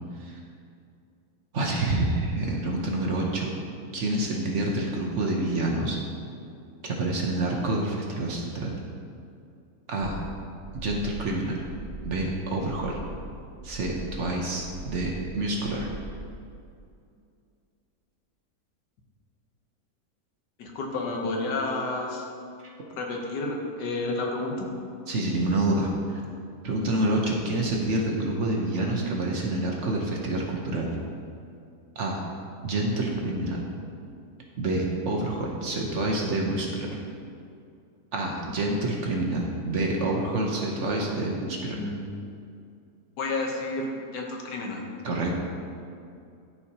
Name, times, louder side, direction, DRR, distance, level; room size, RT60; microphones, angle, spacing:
voice 1, 1.5-3.5 3.9-6.0 6.8-8.8 9.9-10.2 10.7-11.6 12.0-13.0 13.6-15.9 22.6-22.7 25.1-26.2 26.6-30.9 32.0-32.2 32.6-33.6 34.6-36.9 38.1-41.8 45.0-45.3, right 2 dB, 55° right, -1 dB, 1.0 m, -27 dB
sound 1, 10.0-16.4, equal, 70° right, 0.3 m, -41 dB
voice 2, 20.6-22.2 23.0-24.7 41.3-41.4 41.7-42.0 43.2-44.8, left 2 dB, 90° left, 1 dB, 1.6 m, -30 dB
13.0 x 4.7 x 2.8 m, 2.4 s
omnidirectional pair, 1.8 m